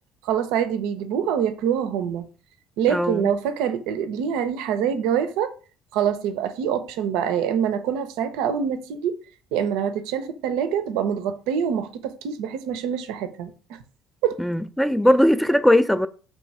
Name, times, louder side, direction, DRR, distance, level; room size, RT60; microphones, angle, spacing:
voice 1, 0.2-2.3 2.8-5.5 5.9-9.1 9.5-13.8 14.2-14.4, right 8 dB, 70° right, 0.4 m, -25 dB
voice 2, 2.9-3.3 14.4-16.1, left 1 dB, 5° left, 0.3 m, -19 dB
3.2 x 3.0 x 4.4 m
hypercardioid pair, 55°, 0 cm